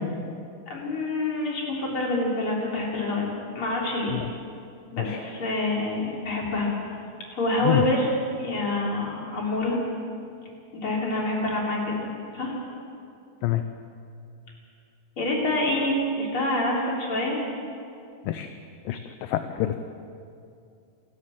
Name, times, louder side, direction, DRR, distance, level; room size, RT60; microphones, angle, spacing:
voice 1, 0.7-3.3 3.5-4.2 4.9-6.7 7.3-8.1 8.4-9.8 10.7-12.5 15.2-17.4, left 1 dB, 35° left, -3 dB, 4.4 m, -27 dB
voice 2, 18.9-19.7, left 14 dB, 75° left, 8 dB, 2.2 m, -26 dB
27.0 x 13.0 x 7.4 m, 2.5 s
omnidirectional pair, 4.3 m